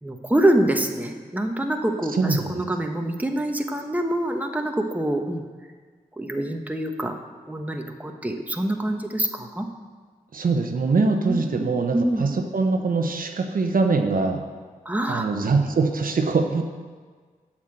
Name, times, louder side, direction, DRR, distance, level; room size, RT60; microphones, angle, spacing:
voice 1, 0.0-5.4 6.2-7.1 7.5-9.7 11.1-12.2 14.8-15.3, right 1 dB, 10° right, 3 dB, 1.2 m, -25 dB
voice 2, 2.1-2.5 10.3-14.4 15.1-16.6, right 4 dB, 70° right, 4 dB, 1.0 m, -23 dB
8.1 x 6.1 x 7.9 m, 1.5 s
cardioid pair, 50°, 15 cm